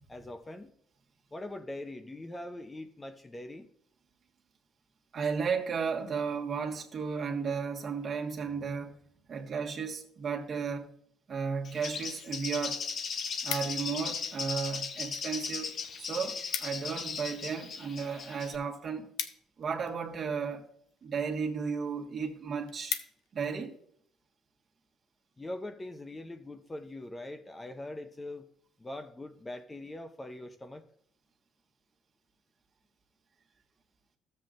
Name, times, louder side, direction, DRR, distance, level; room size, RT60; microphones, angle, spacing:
voice 1, 0.1-0.7 1.3-3.7 25.4-28.5 28.8-30.8, left 1 dB, 15° left, 0.6 m, -42 dB
voice 2, 5.1-9.0 9.3-10.9 11.3-12.8 13.4-19.1 19.6-20.7 21.0-23.0 23.3-23.8, right 5 dB, 45° right, 1.5 m, -34 dB
Bird, 11.6-18.6, left 5 dB, 50° left, 0.8 m, -37 dB
sound 1, 13.5-14.1 14.8-15.3 15.6-15.7 16.0-16.1 16.3-16.9 17.3-20.1 20.9-21.2 21.7-21.8 22.1-22.2 22.5-23.5 24.0-24.2, left 9 dB, 80° left, 0.7 m, -39 dB
13.0 x 7.6 x 2.5 m
cardioid pair, 105°, 0 cm